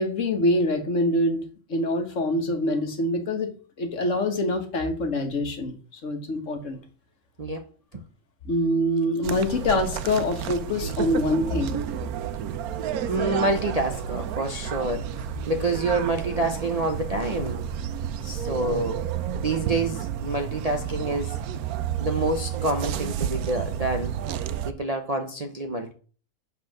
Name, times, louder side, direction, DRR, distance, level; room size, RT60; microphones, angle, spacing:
voice 1, 0.0-1.4 1.7-3.5 3.8-6.8 8.5-11.8, left 1 dB, 60° left, 1.6 m, -25 dB
sound 1, 9.2-24.7, right 9 dB, 90° right, 1.1 m, -31 dB
voice 2, 13.1-15.0 15.5-17.6 18.2-19.0 19.4-21.4 22.0-24.2 24.7-25.9, right 2 dB, 35° right, 0.6 m, -27 dB
8.1 x 4.0 x 6.4 m
omnidirectional pair, 1.5 m